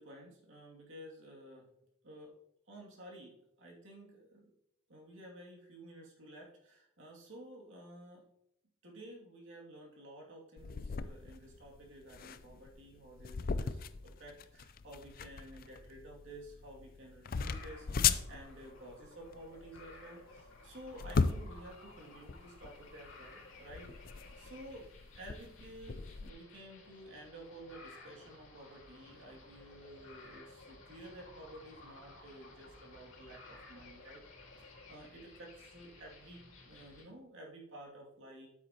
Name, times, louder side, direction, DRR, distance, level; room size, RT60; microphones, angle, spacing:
voice 1, 0.0-1.7 2.0-2.4 2.7-4.5 4.9-8.3 8.8-24.9 25.1-34.2 34.6-38.5, right 1 dB, 65° right, -2 dB, 2.5 m, -52 dB
sound 1, 10.6-26.3, left 5 dB, 45° left, 0.4 m, -38 dB
sound 2, 17.3-37.0, left 2 dB, 75° left, 2.0 m, -56 dB
9.3 x 8.4 x 2.9 m, 0.81 s
head